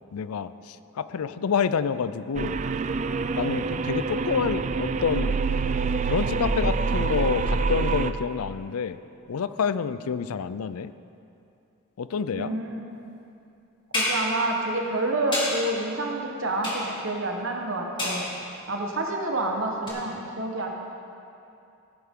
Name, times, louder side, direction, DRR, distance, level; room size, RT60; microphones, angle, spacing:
voice 1, 0.1-2.6 3.4-5.4 6.1-9.0 9.3-10.9 12.0-12.6, left 6 dB, 90° left, 14 dB, 0.4 m, -28 dB
sound 1, 2.4-8.1, right 4 dB, 35° right, 0.3 m, -26 dB
voice 2, 12.3-12.8 13.9-18.2 18.7-20.7, right 2 dB, 60° right, 1 dB, 1.2 m, -28 dB
sound 2, 13.9-14.3 15.3-15.6 16.6-17.1 18.0-18.4 19.9-20.0, left 1 dB, 20° left, 2.3 m, -28 dB
16.0 x 10.5 x 3.7 m, 2.6 s
head